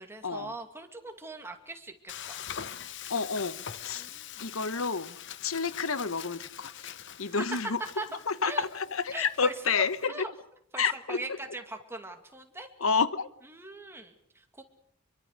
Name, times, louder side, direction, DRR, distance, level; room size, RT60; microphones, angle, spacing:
voice 1, 0.0-2.4 4.0-4.4 7.2-7.4 8.0-8.6 9.1-9.5 10.1-10.3 10.7-12.7 13.5-14.6, right 2 dB, 10° right, 2.4 m, -41 dB
Frying (food), 2.1-10.1, left 9 dB, 60° left, 0.9 m, -43 dB
voice 2, 3.1-4.1 4.4-5.2 5.4-7.8 8.3-10.2 10.8-11.2 12.8-13.3, left 5 dB, 80° left, 1.1 m, -30 dB
24.0 x 23.5 x 6.7 m
head